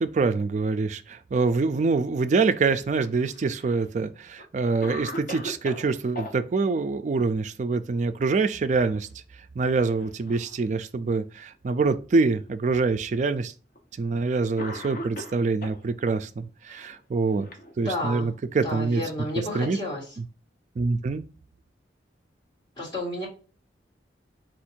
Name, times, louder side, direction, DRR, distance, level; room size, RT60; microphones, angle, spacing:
voice 1, 0.0-9.1 9.6-13.5 14.0-17.5 17.8-19.0 19.5-19.8 20.8-21.2, right 4 dB, 40° right, 0.3 m, -25 dB
Cough, 3.0-3.9 4.4-4.5 4.8-6.3 8.2-8.6 9.0-9.1 9.9-10.6 11.4-11.5 12.5-12.6 13.8-13.9 14.6-15.8 16.8-18.2, left 1 dB, 50° left, 0.7 m, -39 dB
voice 2, 17.8-18.3 18.6-20.2 22.7-23.3, left 1 dB, 25° left, 1.7 m, -32 dB
4.4 x 2.5 x 4.3 m
head